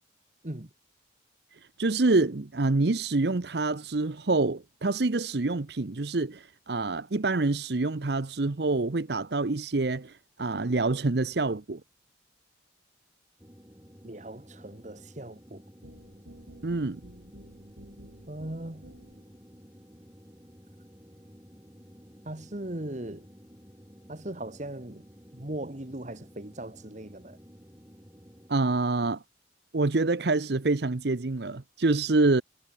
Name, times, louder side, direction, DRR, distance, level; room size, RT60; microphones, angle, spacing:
voice 1, 1.5-11.8 16.6-17.0 28.5-29.2 29.7-32.4, right 3 dB, 60° right, 0.8 m, -26 dB
sound 1, 13.4-28.5, equal, 15° right, 6.4 m, -53 dB
voice 2, 14.0-15.6 18.3-19.0 22.3-23.3 24.1-25.1 25.3-27.4, right 1 dB, 40° right, 1.7 m, -39 dB
sound 2, 15.8-19.4, right 1 dB, 85° right, 3.6 m, -51 dB
head